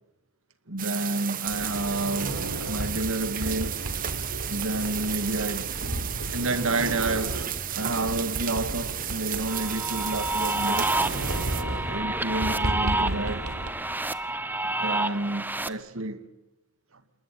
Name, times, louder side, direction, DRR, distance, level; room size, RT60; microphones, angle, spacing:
voice 1, 0.7-3.8 4.5-5.7 6.3-7.4 7.7-10.9 11.8-13.5 14.6-16.2, right 2 dB, 65° right, 2.2 m, -30 dB
sound 1, 0.8-11.6, right 11 dB, 40° right, 1.2 m, -33 dB
Sliding door, 1.4-13.7, right 1 dB, 80° right, 3.9 m, -34 dB
sound 2, 9.5-15.7, right 2 dB, 10° right, 0.9 m, -29 dB
28.5 x 20.5 x 9.1 m
head